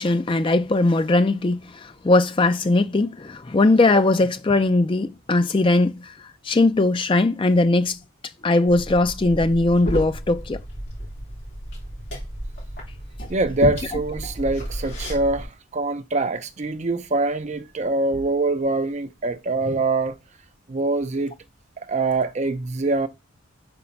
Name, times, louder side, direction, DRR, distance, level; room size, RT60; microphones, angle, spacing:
voice 1, 0.0-6.1 6.4-8.0 8.4-10.6, left 2 dB, 25° left, 0.4 m, -19 dB
Liquid, 8.7-15.4, equal, 55° left, 3.7 m, -32 dB
voice 2, 13.3-15.5 15.7-20.1 20.7-21.3 21.8-23.1, right 2 dB, 30° right, 0.5 m, -24 dB
5.2 x 4.1 x 5.8 m
head